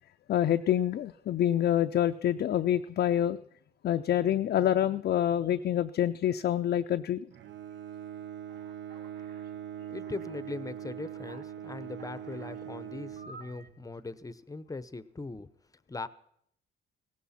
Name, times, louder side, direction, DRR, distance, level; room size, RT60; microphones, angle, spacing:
voice 1, 0.3-3.4 3.8-7.3, left 11 dB, 55° left, 7 dB, 0.5 m, -27 dB
Bowed string instrument, 7.3-14.0, right 10 dB, 65° right, 0.7 m, -42 dB
Alarm, 8.5-9.5 10.0-10.5 11.0-12.6 13.2-13.7, right 3 dB, 50° right, 1.8 m, -53 dB
voice 2, 9.9-15.5 15.9-16.1, left 3 dB, 15° left, 15 dB, 0.7 m, -40 dB
17.0 x 15.5 x 4.2 m, 0.71 s
cardioid pair, 90°, 20 cm